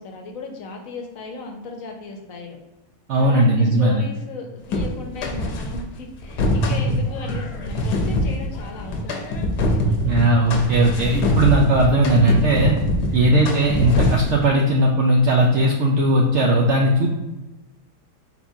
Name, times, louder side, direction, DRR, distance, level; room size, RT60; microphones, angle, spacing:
voice 1, 0.0-2.6 3.2-10.2 13.0-13.4, left 3 dB, 65° left, 2 dB, 1.0 m, -36 dB
voice 2, 3.1-4.0 10.0-12.7 13.1-17.1, right 1 dB, 75° right, 0 dB, 0.6 m, -18 dB
sound 1, 4.7-5.8 6.2-14.5, left 1 dB, 85° left, 1.3 m, -23 dB
4.2 x 4.2 x 2.6 m, 1.0 s
omnidirectional pair, 1.7 m